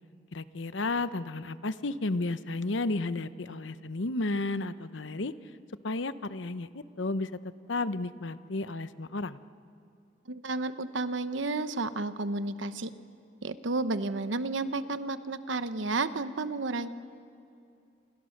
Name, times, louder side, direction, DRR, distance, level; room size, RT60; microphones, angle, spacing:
voice 1, 0.3-5.3 5.8-7.3 7.7-9.4, left 2 dB, 80° left, 13 dB, 0.8 m, -32 dB
voice 2, 10.3-12.9 13.4-16.9, right 3 dB, 85° right, 11 dB, 1.0 m, -32 dB
28.0 x 27.0 x 6.6 m, 2.5 s
head